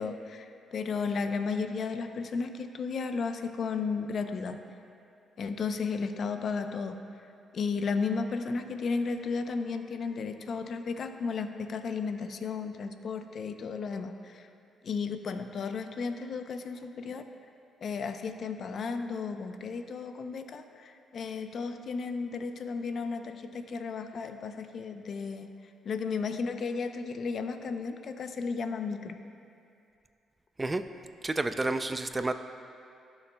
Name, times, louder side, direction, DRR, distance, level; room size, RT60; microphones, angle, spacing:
voice 1, 0.0-4.6 5.4-7.0 7.5-14.5 14.8-17.3 17.8-25.5 25.8-29.2, left 5 dB, 55° left, 8 dB, 0.5 m, -34 dB
voice 2, 31.2-32.3, right 2 dB, 20° right, 10 dB, 0.4 m, -30 dB
17.5 x 7.1 x 2.2 m, 2.6 s
cardioid pair, 90°, 0 cm